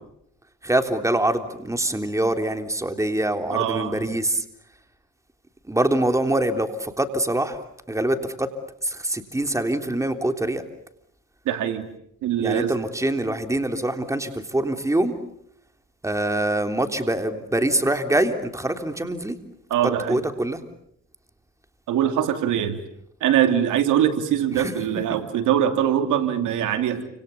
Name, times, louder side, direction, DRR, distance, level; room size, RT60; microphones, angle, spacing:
voice 1, 0.6-4.4 5.7-7.6 7.9-8.5 8.8-10.6 12.4-15.1 16.0-19.4 20.1-20.6 24.6-24.7, right 1 dB, 10° right, 6 dB, 3.4 m, -24 dB
voice 2, 3.5-4.0 11.5-11.9 12.2-12.7 19.7-20.2 21.9-22.8 23.2-27.1, right 10 dB, 85° right, 7 dB, 2.9 m, -22 dB
29.5 x 27.0 x 7.1 m, 0.74 s
cardioid pair, 90°, 30 cm